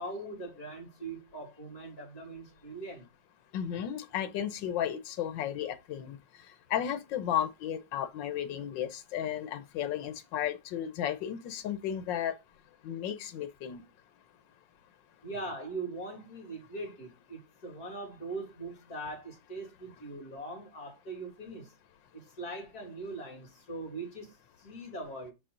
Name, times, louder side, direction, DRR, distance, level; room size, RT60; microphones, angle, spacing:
voice 1, 0.0-3.1 15.2-21.7 22.1-25.3, right 2 dB, 55° left, 2.9 m, -41 dB
voice 2, 3.5-6.2 6.7-12.3 12.8-13.8, left 10 dB, 80° left, 1.5 m, -34 dB
6.4 x 4.8 x 3.8 m
omnidirectional pair, 2.0 m